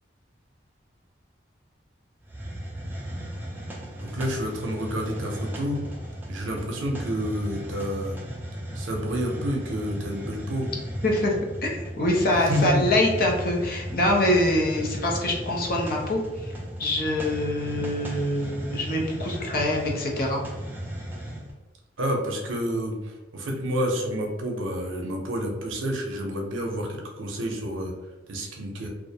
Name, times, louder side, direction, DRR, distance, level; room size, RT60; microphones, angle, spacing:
Hiss, 2.2-21.5, equal, 10° right, 0.3 m, -36 dB
voice 1, 4.0-5.8 6.3-8.2 8.7-10.7 12.3-12.9 22.0-23.0 23.3-27.9 28.3-28.9, equal, 85° right, 1 dB, 0.6 m, -29 dB
voice 2, 11.0-11.7 12.0-16.5 16.8-20.4, left 1 dB, 50° left, -1 dB, 0.5 m, -24 dB
2.4 x 2.1 x 2.7 m, 1.2 s
head